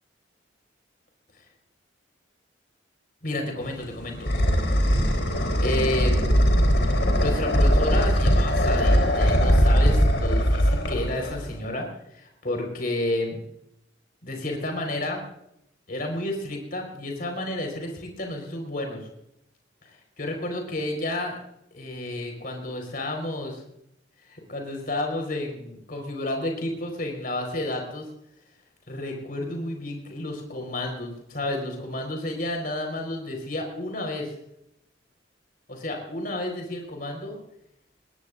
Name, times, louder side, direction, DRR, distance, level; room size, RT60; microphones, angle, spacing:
voice 1, 3.2-4.3 5.6-6.2 7.2-13.4 14.2-15.2 15.9-19.1 19.8-21.4 21.7-23.6 24.2-28.1 28.9-34.4 35.7-37.4, left 1 dB, 50° left, 3 dB, 4.5 m, -31 dB
sound 1, 3.6-11.6, equal, 70° left, 3.6 m, -21 dB
20.5 x 20.0 x 2.6 m, 0.77 s
head